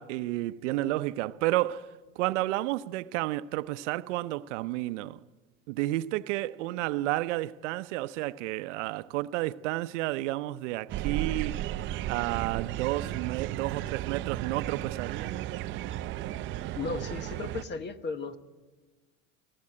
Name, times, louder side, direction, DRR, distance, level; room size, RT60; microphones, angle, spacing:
voice 1, 0.0-1.9 2.2-5.2 5.7-11.6 12.1-15.4, right 17 dB, 70° right, 0.7 m, -31 dB
sound 1, 10.9-17.6, right 13 dB, 30° right, 0.5 m, -34 dB
voice 2, 16.8-18.4, left 4 dB, 30° left, 1.1 m, -35 dB
20.0 x 15.0 x 8.6 m
supercardioid pair, 140°, 38 cm